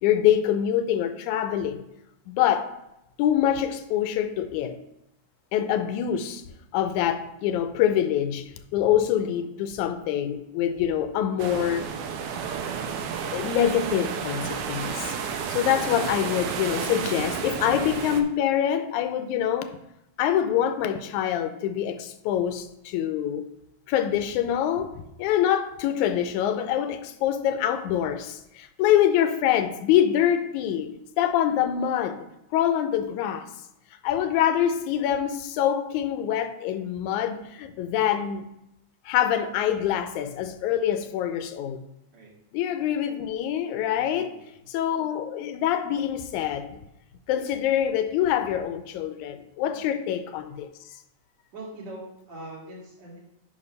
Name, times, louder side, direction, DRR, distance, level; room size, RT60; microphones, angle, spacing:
voice 1, 0.0-1.8 2.3-2.7 3.2-4.8 5.5-6.4 6.7-8.5 8.7-11.9 13.3-15.1 15.5-19.8 20.2-23.5 23.9-32.3 32.5-33.5 34.0-38.5 39.1-41.9 42.5-44.3 44.7-46.8 47.3-50.7, left 10 dB, 85° left, 2.0 m, -25 dB
sound 1, 11.4-18.2, right 7 dB, 80° right, 1.3 m, -31 dB
voice 2, 43.9-44.6 49.6-49.9 51.5-53.2, right 1 dB, 65° right, 3.4 m, -42 dB
9.5 x 3.2 x 5.4 m
omnidirectional pair, 3.4 m